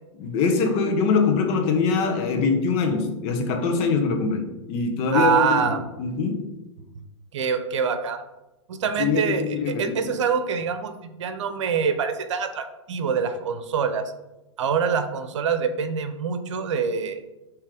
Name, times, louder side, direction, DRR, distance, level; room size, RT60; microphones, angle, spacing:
voice 1, 0.2-5.7 6.0-6.5 9.0-10.1, left 4 dB, 45° left, 4 dB, 1.2 m, -23 dB
voice 2, 5.1-5.8 7.3-8.2 8.7-14.0 14.6-17.2, right 6 dB, 70° right, 9 dB, 0.8 m, -25 dB
7.4 x 3.2 x 5.0 m, 0.99 s
hypercardioid pair, 115°, 16 cm